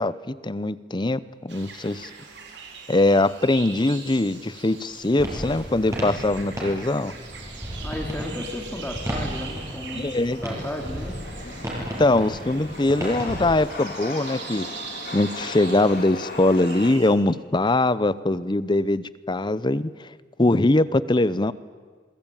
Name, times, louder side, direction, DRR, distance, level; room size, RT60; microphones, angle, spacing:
voice 1, 0.0-2.1 2.9-7.1 9.9-10.4 11.4-14.7 15.1-21.5, left 2 dB, 25° left, 17 dB, 0.7 m, -22 dB
sound 1, 1.5-17.1, right 5 dB, 75° right, 4.7 m, -42 dB
Chatter / Subway metro underground, 2.7-16.9, left 3 dB, 55° left, 3.1 m, -41 dB
sound 2, 5.2-13.4, equal, 20° right, 8.0 m, -34 dB
voice 2, 7.8-11.2, left 1 dB, 10° left, 2 dB, 2.8 m, -34 dB
28.0 x 22.5 x 9.2 m, 1.5 s
head